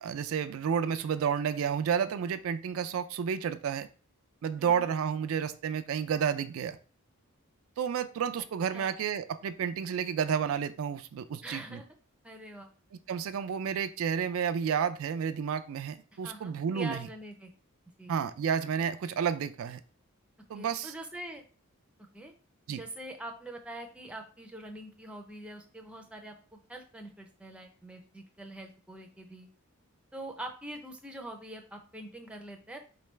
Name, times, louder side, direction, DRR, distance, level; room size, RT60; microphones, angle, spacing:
voice 1, 0.0-3.9 4.4-6.8 7.8-11.8 13.1-17.1 18.1-19.8 20.5-20.9 22.7-22.8, right 7 dB, 65° right, 10 dB, 0.3 m, -31 dB
voice 2, 4.6-4.9 8.7-8.9 11.4-11.9 12.2-12.7 16.1-17.5 18.0-18.2 20.5-21.4 22.1-22.3 22.7-29.5 30.1-32.8, right 1 dB, 5° right, 3 dB, 0.5 m, -44 dB
4.6 x 3.3 x 3.1 m, 0.39 s
head